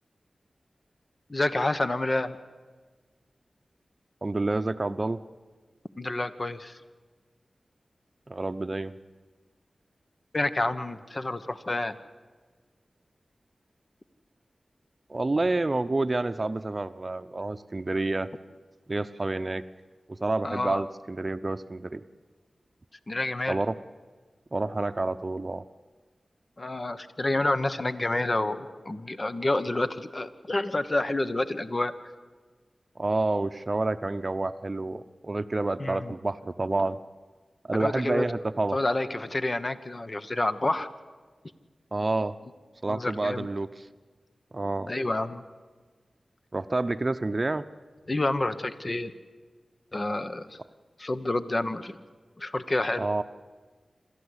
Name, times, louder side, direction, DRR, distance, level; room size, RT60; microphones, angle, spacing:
voice 1, 1.3-2.4 6.0-6.8 10.3-12.0 20.4-20.8 23.1-23.6 26.6-31.9 35.8-36.1 37.7-38.3 38.7-40.9 42.9-43.5 44.9-45.4 48.1-49.1 49.9-50.6 51.0-51.9 52.4-53.1, left 2 dB, 40° left, 11 dB, 1.2 m, -28 dB
voice 2, 4.2-5.2 8.3-8.9 15.1-18.3 18.9-19.6 20.1-22.0 23.5-23.7 24.5-25.6 33.0-37.0 37.7-38.8 41.9-42.3 42.8-43.8 44.5-44.9 46.5-47.6 53.0-53.2, right 2 dB, 40° right, 11 dB, 0.7 m, -28 dB
27.0 x 13.5 x 8.2 m, 1.4 s
cardioid pair, 45°, 0 cm